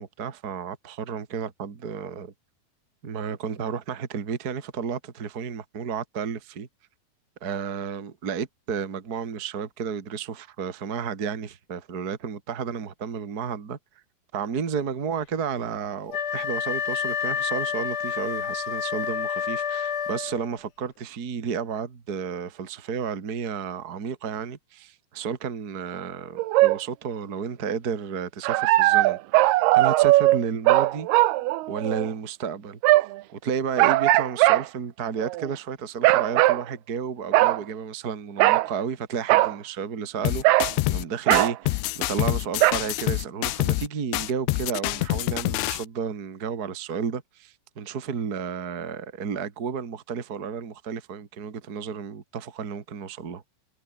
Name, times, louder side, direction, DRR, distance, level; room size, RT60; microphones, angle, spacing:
voice 1, 0.0-2.3 3.0-6.7 7.4-13.8 14.3-31.1 31.7-32.8 33.3-53.4, right 6 dB, 55° right, 1.0 m, -32 dB
Wind instrument woodwind instrument, 16.1-20.5, left 8 dB, 50° left, 3.6 m, -29 dB
sound 1, 26.4-26.8 28.4-32.1 32.8-33.2 33.8-34.6 35.2-35.5 36.0-36.6 37.3-37.6 38.4-38.7 39.3-39.5 40.4-40.7 41.3-41.5 42.6-42.7, right 18 dB, 80° right, 2.4 m, -19 dB
sound 2, 40.2-41.0 41.3-43.9 44.1-45.8, left 19 dB, 85° left, 3.0 m, -26 dB
omnidirectional pair, 5.4 m